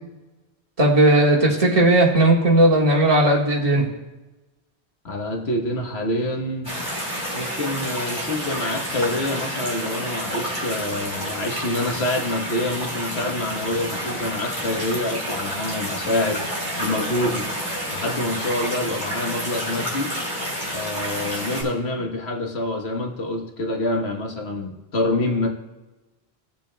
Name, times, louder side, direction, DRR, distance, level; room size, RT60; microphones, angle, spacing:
voice 1, 0.8-3.9, right 1 dB, 35° right, -2 dB, 1.6 m, -16 dB
voice 2, 5.0-6.7 7.3-16.4 16.8-17.4 17.9-20.1 20.7-25.5, left 1 dB, 75° left, 1 dB, 1.4 m, -26 dB
sound 1, 6.6-21.6, equal, 20° left, 3.6 m, -29 dB
19.0 x 7.3 x 2.2 m, 1.1 s
omnidirectional pair, 1.1 m